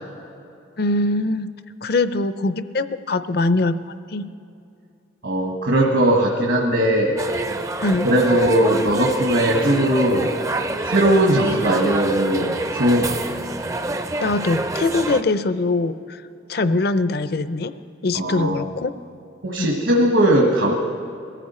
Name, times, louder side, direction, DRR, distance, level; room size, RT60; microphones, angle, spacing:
voice 1, 0.8-1.5 1.8-3.7 4.1-4.2 7.8-8.1 14.2-16.2 16.5-17.7 18.0-18.9 19.6-19.7, left 2 dB, 50° left, 13 dB, 0.5 m, -22 dB
voice 2, 5.2-7.1 8.0-10.3 10.8-13.3 18.1-18.6 19.4-20.7, right 1 dB, 70° right, 0 dB, 1.4 m, -19 dB
sound 1, 7.2-15.2, right 2 dB, 15° right, 0.4 m, -27 dB
22.0 x 14.0 x 4.3 m, 2.6 s
head